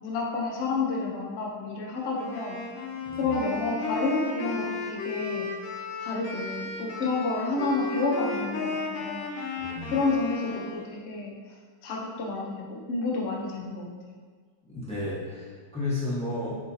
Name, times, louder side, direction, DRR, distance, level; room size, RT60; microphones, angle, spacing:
voice 1, 0.0-2.6 3.2-5.5 6.0-9.3 9.9-11.6 11.8-13.9, left 3 dB, 55° left, -3 dB, 0.7 m, -30 dB
Wind instrument woodwind instrument, 2.1-10.9, left 4 dB, 75° left, 1.3 m, -35 dB
voice 2, 9.6-9.9 14.7-16.6, left 2 dB, 10° left, -8 dB, 0.4 m, -32 dB
4.3 x 3.7 x 2.7 m, 1.5 s
omnidirectional pair, 2.0 m